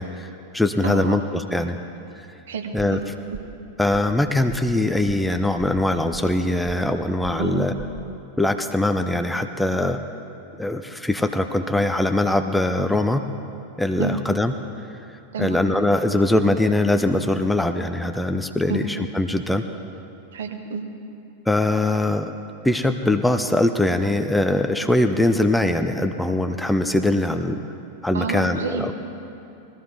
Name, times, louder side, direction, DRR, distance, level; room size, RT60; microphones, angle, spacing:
voice 1, 0.0-1.8 2.7-3.0 3.8-7.7 8.4-10.0 10.6-13.2 13.8-14.5 15.4-19.6 21.5-22.3 22.6-27.6 28.0-28.9, left 1 dB, 5° left, 7 dB, 0.6 m, -22 dB
voice 2, 0.8-1.2 2.5-3.0 7.4-7.7 14.0-14.2 15.3-15.6 18.7-18.8 20.3-20.8 28.1-28.9, right 6 dB, 65° right, 4 dB, 1.3 m, -28 dB
sound 1, 3.0-3.1 3.3-3.6 3.9-4.2 4.5-4.8 5.1-5.3 5.6-6.4 6.7-7.0 7.2-7.5 7.8-8.1, right 7 dB, 20° right, 0.9 m, -39 dB
20.0 x 14.0 x 3.6 m, 2.7 s
figure-of-eight pair, 90°, 0 cm